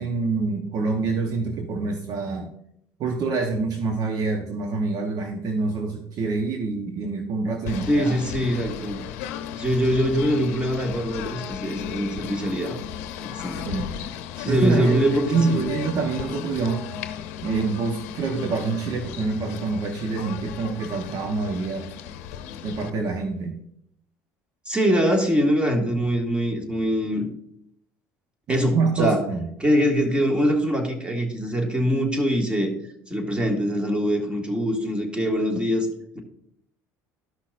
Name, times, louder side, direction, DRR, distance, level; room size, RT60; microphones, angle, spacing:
voice 1, 0.0-2.5 3.0-8.2 13.5-13.9 14.5-16.9 17.4-21.9 22.6-23.6 28.5-29.5, right 4 dB, 55° right, 4 dB, 1.0 m, -26 dB
Singing / Bird, 7.6-22.9, left 9 dB, 90° left, 0.7 m, -35 dB
voice 2, 7.9-9.0 9.6-12.8 13.2-13.7 14.4-15.7 24.7-27.3 28.5-29.2 29.6-32.7 33.1-35.9, equal, 15° right, 2 dB, 1.9 m, -23 dB
13.5 x 5.7 x 2.5 m, 0.72 s
supercardioid pair, 95°, 8 cm